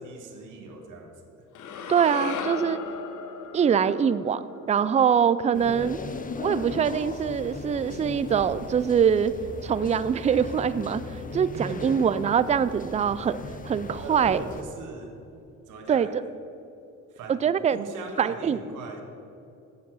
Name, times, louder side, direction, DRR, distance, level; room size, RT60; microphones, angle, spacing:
voice 1, 0.0-1.5 11.5-12.1 14.0-15.2 15.7-16.2 17.1-17.4 17.7-19.0, right 3 dB, 85° right, 4 dB, 1.5 m, -39 dB
sound 1, 1.5-5.8, left 6 dB, 80° left, 0.9 m, -37 dB
voice 2, 1.9-2.8 3.5-4.4 4.7-6.0 6.4-9.3 9.6-11.0 11.3-13.4 13.7-14.4 15.9-16.1 17.3-17.8 18.2-18.6, right 7 dB, 25° right, 15 dB, 0.3 m, -23 dB
sound 2, 5.5-14.6, left 3 dB, 25° left, 0.7 m, -38 dB
8.1 x 7.4 x 6.2 m, 2.7 s
cardioid pair, 90°, 30 cm